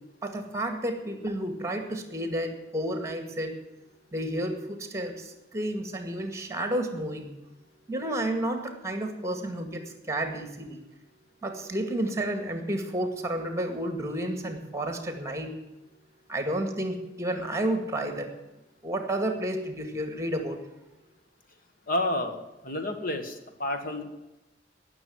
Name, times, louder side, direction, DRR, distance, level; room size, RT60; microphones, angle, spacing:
voice 1, 0.2-3.6 4.1-7.3 7.9-10.8 11.4-15.5 16.3-18.3 18.8-20.6, right 1 dB, 15° right, 5 dB, 2.0 m, -31 dB
voice 2, 21.9-24.0, left 1 dB, 50° left, 6 dB, 1.6 m, -30 dB
18.0 x 7.1 x 8.0 m, 1.0 s
head